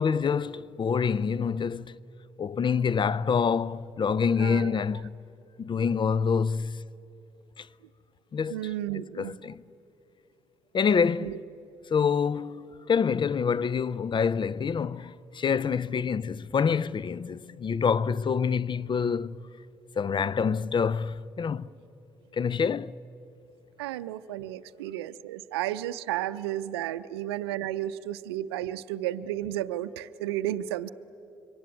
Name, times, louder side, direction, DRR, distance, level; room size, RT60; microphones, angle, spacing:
voice 1, 0.0-2.0 2.4-5.2 5.6-6.8 7.6-7.7 8.3-8.6 9.2-9.6 10.7-11.4 11.9-19.4 20.0-21.7 22.3-22.9, left 6 dB, 40° left, 0.6 m, -26 dB
voice 2, 4.4-4.8 8.5-9.4 11.2-11.4 23.8-30.9, right 13 dB, 85° right, 0.5 m, -33 dB
26.0 x 23.5 x 9.5 m
hypercardioid pair, 55°, 13 cm